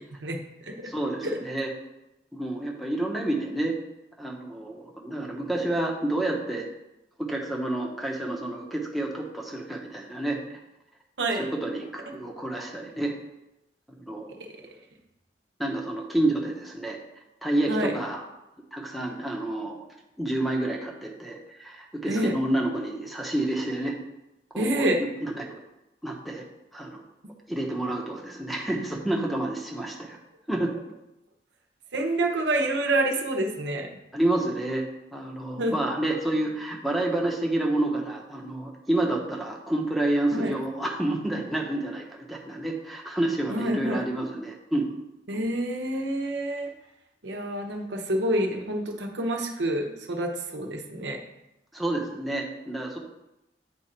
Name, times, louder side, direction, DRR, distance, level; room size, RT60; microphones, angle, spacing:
voice 1, 0.0-0.9 1.2-1.4 11.2-11.5 14.4-14.6 17.7-17.9 22.1-22.3 24.6-25.0 31.9-33.9 35.6-35.8 40.3-40.5 43.5-44.0 45.3-46.7 47.2-51.2, right 1 dB, 85° right, 3 dB, 1.0 m, -28 dB
voice 2, 0.8-1.7 2.3-3.8 4.2-6.7 7.2-10.6 11.4-13.1 13.9-14.4 15.6-17.0 17.4-18.2 18.7-19.8 20.2-24.0 24.5-25.5 26.0-26.4 26.7-27.0 27.5-30.2 30.5-30.7 34.1-34.8 35.1-44.9 51.7-53.0, right 1 dB, ahead, -2 dB, 0.8 m, -29 dB
8.6 x 3.8 x 4.4 m, 0.92 s
head